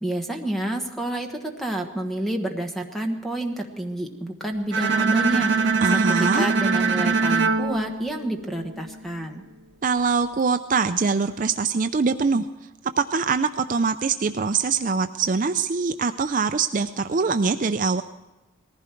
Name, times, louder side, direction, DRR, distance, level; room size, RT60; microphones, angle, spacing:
voice 1, 0.0-9.4, right 1 dB, ahead, 3 dB, 1.3 m, -29 dB
Bowed string instrument, 4.7-8.9, right 4 dB, 60° right, 0.8 m, -23 dB
voice 2, 5.8-6.5 9.8-12.5 12.8-18.0, right 5 dB, 40° right, 8 dB, 0.4 m, -23 dB
19.0 x 15.0 x 4.5 m, 1.1 s
head